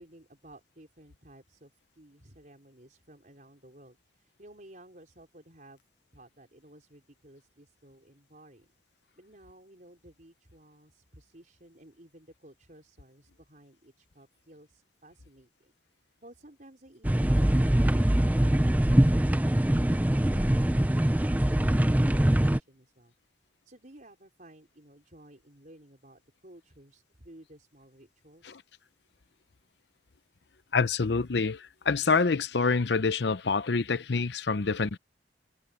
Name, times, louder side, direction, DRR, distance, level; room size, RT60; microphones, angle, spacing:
voice 1, 0.0-5.8 6.1-8.7 9.2-19.5 19.8-23.1 23.6-28.6, right 1 dB, 50° right, 4.7 m, -55 dB
sound 1, 17.0-22.6, right 1 dB, 10° right, 0.5 m, -23 dB
voice 2, 30.7-35.0, left 4 dB, 75° left, 0.7 m, -26 dB
head